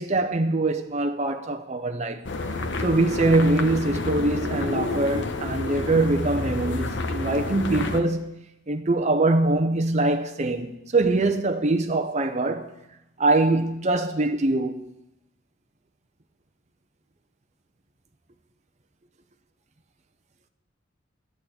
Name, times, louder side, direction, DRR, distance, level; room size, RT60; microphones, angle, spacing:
voice 1, 0.0-2.3 2.8-12.7 13.2-14.9, right 2 dB, 35° right, 0.7 m, -23 dB
sound 1, 2.2-8.0, left 2 dB, 60° left, 1.1 m, -29 dB
11.5 x 6.5 x 9.2 m
head